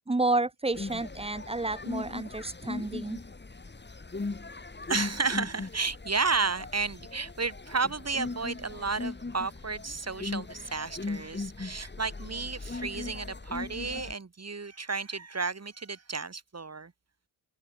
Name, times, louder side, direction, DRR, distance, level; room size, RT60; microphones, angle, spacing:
voice 1, 0.1-3.2, right 2 dB, 10° right, 1.0 m, -30 dB
sound 1, 0.7-14.1, left 3 dB, 20° left, 3.1 m, -39 dB
voice 2, 4.9-16.9, right 4 dB, 30° right, 5.5 m, -32 dB
supercardioid pair, 60°, 47 cm